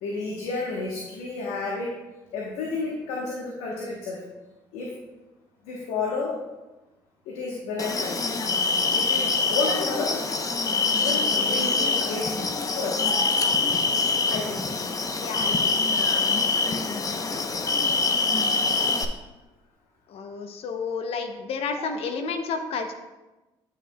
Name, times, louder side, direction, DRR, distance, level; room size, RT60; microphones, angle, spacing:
voice 1, 0.0-1.9 2.3-4.2 4.7-4.9 5.6-6.4 7.3-8.2 8.9-10.2 11.0-12.3 12.7-13.0 14.3-14.6 21.8-21.9, left 3 dB, 85° left, -3 dB, 1.1 m, -31 dB
sound 1, 7.8-19.0, left 4 dB, 35° left, 0.8 m, -24 dB
voice 2, 15.2-16.2 20.1-22.9, left 5 dB, 65° left, 6 dB, 0.7 m, -31 dB
9.7 x 6.4 x 2.3 m, 1.1 s
supercardioid pair, 60°, 11 cm